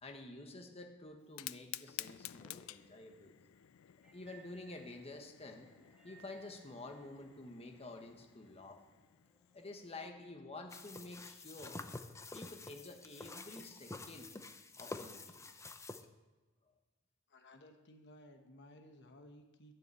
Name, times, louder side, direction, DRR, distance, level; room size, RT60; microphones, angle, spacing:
voice 1, 0.0-3.3 4.1-5.7 6.0-8.8 9.5-11.8 12.3-14.3 14.8-15.2, left 2 dB, 30° left, 4 dB, 1.2 m, -50 dB
Fire, 1.2-10.1, left 14 dB, 80° left, 0.4 m, -52 dB
sound 1, 4.0-10.9, right 5 dB, 5° right, 1.8 m, -67 dB
sound 2, 10.7-16.0, left 2 dB, 15° left, 0.6 m, -48 dB
voice 2, 17.3-19.7, left 1 dB, 60° left, 5 dB, 1.1 m, -58 dB
12.0 x 6.8 x 8.3 m, 1.2 s
head